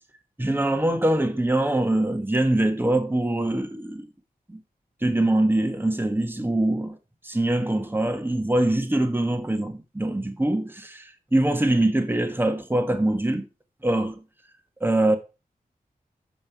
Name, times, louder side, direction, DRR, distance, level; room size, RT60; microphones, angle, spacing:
voice 1, 0.4-4.1 4.5-4.6 5.0-7.0 7.2-13.5 13.8-14.2 14.8-15.2, right 1 dB, 15° right, 1.3 m, -23 dB
7.6 x 5.4 x 4.6 m
cardioid pair, 50°, 15 cm